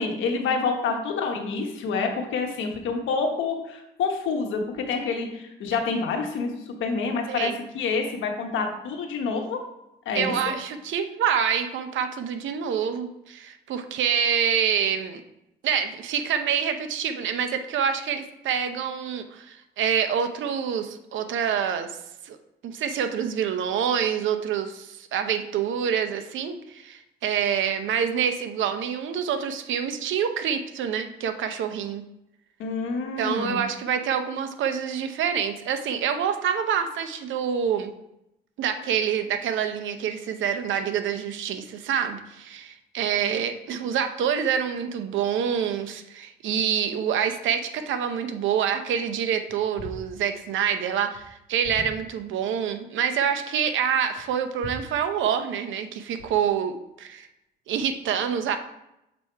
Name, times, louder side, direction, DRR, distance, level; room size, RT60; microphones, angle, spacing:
voice 1, 0.0-9.6 10.0-10.3 32.6-33.6, left 4 dB, 80° left, 3 dB, 1.1 m, -27 dB
voice 2, 7.3-7.6 10.1-15.2 15.6-22.0 22.2-22.4 22.6-32.0 33.2-37.9 38.6-57.3 57.7-58.6, right 8 dB, 75° right, 8 dB, 0.7 m, -26 dB
6.9 x 3.4 x 4.6 m, 0.87 s
cardioid pair, 90°, 20 cm